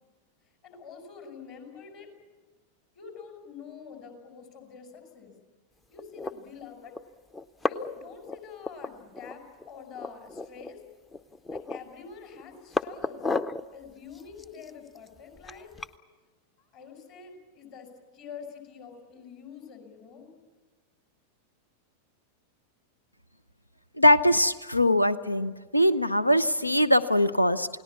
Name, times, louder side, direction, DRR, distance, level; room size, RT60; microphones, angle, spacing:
voice 1, 0.6-2.1 2.9-5.3 5.9-6.9 7.6-10.8 11.5-13.2 13.7-15.7 16.6-17.9 18.1-20.3, left 6 dB, 45° left, 4 dB, 5.6 m, -46 dB
sound 1, 6.0-6.3 6.9-7.0 7.3-8.0 8.2-9.3 9.6-9.7 9.9-10.7 11.1-11.9 12.3-13.6 14.1-15.9, left 3 dB, 15° left, 0.6 m, -33 dB
voice 2, 24.0-27.7, left 1 dB, 85° left, 16 dB, 0.6 m, -22 dB
28.5 x 18.5 x 7.2 m, 1.3 s
figure-of-eight pair, 90°, 0 cm